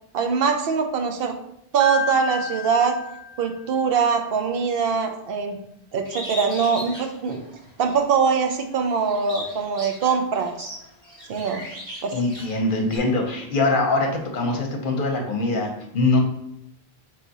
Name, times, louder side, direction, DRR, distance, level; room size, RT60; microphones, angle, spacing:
voice 1, 0.1-1.3 1.7-3.0 3.4-5.6 5.9-7.4 7.8-10.7 11.3-11.6 12.0-12.1, right 6 dB, 70° right, 5 dB, 0.8 m, -22 dB
Piano, 1.8-3.9, left 4 dB, 90° right, 1.5 m, -32 dB
Bird, 6.0-8.0 8.5-13.0, equal, 45° right, 1.8 m, -38 dB
voice 2, 12.1-16.2, left 2 dB, 60° left, 2 dB, 0.8 m, -23 dB
3.5 x 3.2 x 4.0 m, 0.79 s
omnidirectional pair, 1.1 m